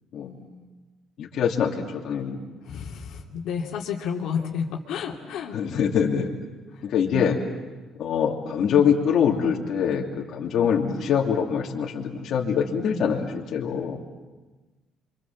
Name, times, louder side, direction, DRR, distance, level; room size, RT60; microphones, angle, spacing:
voice 1, 0.1-0.7 2.6-5.6 6.7-6.9, left 7 dB, 75° left, -1 dB, 2.9 m, -31 dB
voice 2, 1.2-2.4 5.5-6.3 6.8-7.4 8.0-14.0, left 7 dB, 55° left, -1 dB, 3.0 m, -24 dB
29.0 x 25.5 x 7.5 m, 1.2 s
cardioid pair, 165°, 0 cm